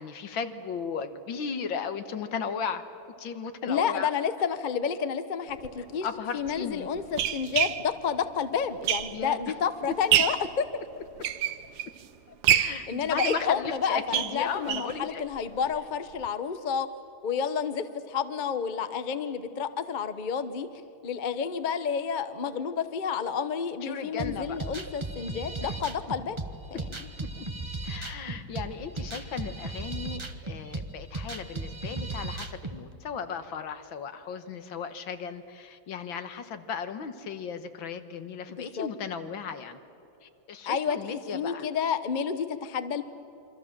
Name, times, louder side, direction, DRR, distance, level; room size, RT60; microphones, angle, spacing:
voice 1, 0.0-2.8 3.2-4.1 6.0-6.9 9.1-9.5 12.5-15.2 23.8-24.6 25.6-25.8 26.7-26.8 27.2-27.5 27.8-39.8 40.2-41.7, left 6 dB, 70° left, 10 dB, 1.9 m, -36 dB
voice 2, 3.7-6.1 6.3-10.6 12.5-16.9 17.2-20.7 21.0-26.4 26.7-26.8 38.6-38.9 40.7-41.0 41.3-43.0, left 7 dB, 45° left, 11 dB, 0.6 m, -30 dB
sound 1, 5.6-5.7 6.5-9.4 9.8-10.5 11.0-12.0 12.4-15.0 15.3-15.4 15.7-15.8 16.2-16.3, right 11 dB, 70° right, 1.5 m, -27 dB
sound 2, 24.2-32.8, right 2 dB, 20° right, 0.7 m, -36 dB
27.0 x 24.5 x 7.5 m, 2.9 s
omnidirectional pair, 2.3 m